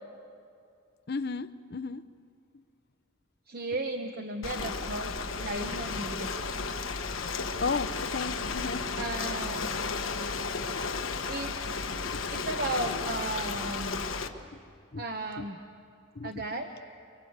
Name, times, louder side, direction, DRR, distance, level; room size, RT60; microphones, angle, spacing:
voice 1, 1.1-2.0 7.6-8.8 12.1-12.2 14.9-15.0 15.4-15.5 16.1-16.4, left 4 dB, 50° left, 13 dB, 0.7 m, -34 dB
voice 2, 3.5-6.5 9.0-9.7 11.3-11.6 12.3-14.1 15.0-15.6 16.2-16.7, right 2 dB, 45° right, 4 dB, 1.0 m, -35 dB
Ocean, 4.4-14.3, left 4 dB, 65° left, 1.3 m, -33 dB
28.0 x 23.0 x 8.1 m, 2.4 s
head